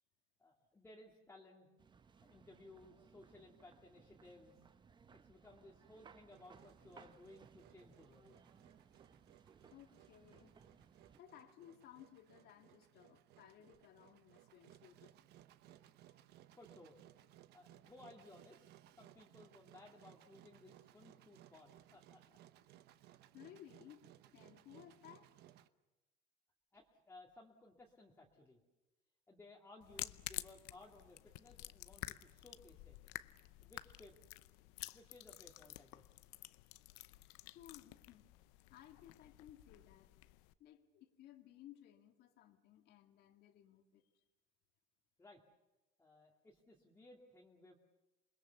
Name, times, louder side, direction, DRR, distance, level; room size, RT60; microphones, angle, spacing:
voice 1, 0.4-1.7 2.2-4.6 5.1-8.4 16.5-17.0 17.5-18.6 19.0-22.4 26.7-28.6 29.3-33.0 33.6-34.2 34.9-36.0 45.2-45.4 46.0-47.8, left 2 dB, 15° left, -2 dB, 2.2 m, -60 dB
sound 1, 1.8-11.2, right 6 dB, 25° right, 0.9 m, -64 dB
Engine, 6.3-25.7, right 13 dB, 60° right, 1.0 m, -64 dB
voice 2, 9.6-10.6 11.2-15.1 15.7-16.2 23.3-25.3 37.5-38.3 38.7-40.1 40.6-44.0, left 11 dB, 60° left, 6 dB, 2.2 m, -60 dB
sound 2, 29.8-40.5, left 19 dB, 85° left, 0.7 m, -51 dB
28.0 x 21.0 x 7.0 m, 1.0 s
cardioid pair, 130°, 19 cm